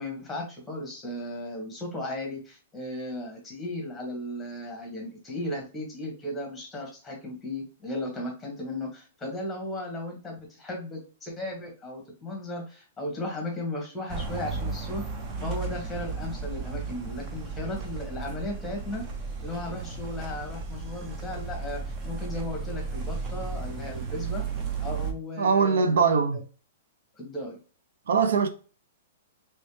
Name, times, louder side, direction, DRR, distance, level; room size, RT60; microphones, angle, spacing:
voice 1, 0.0-15.0 15.4-19.0 19.4-24.4 24.8-26.4 27.1-27.6, left 1 dB, 5° left, 1.4 m, -36 dB
sound 1, 14.1-25.1, right 5 dB, 25° right, 0.7 m, -34 dB
voice 2, 25.4-26.4 28.1-28.5, right 5 dB, 80° right, 0.5 m, -22 dB
3.2 x 3.1 x 3.1 m
hypercardioid pair, 155°, 0 cm